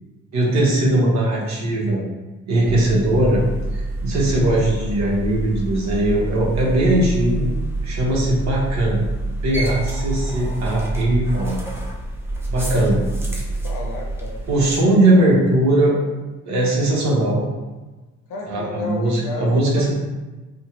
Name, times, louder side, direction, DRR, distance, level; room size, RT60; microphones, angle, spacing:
voice 1, 0.3-2.0 2.5-3.4 3.7-7.5 7.8-9.1 9.4-11.5 12.5-13.0 14.5-16.0 16.5-17.5 18.5-19.9, right 1 dB, 65° right, -4 dB, 1.1 m, -19 dB
sound 1, 2.6-14.8, right 2 dB, 10° right, 0.6 m, -27 dB
voice 2, 12.7-14.4 18.3-19.9, left 2 dB, 80° left, -1 dB, 0.8 m, -32 dB
3.4 x 2.2 x 2.9 m, 1.2 s
cardioid pair, 90°, 30 cm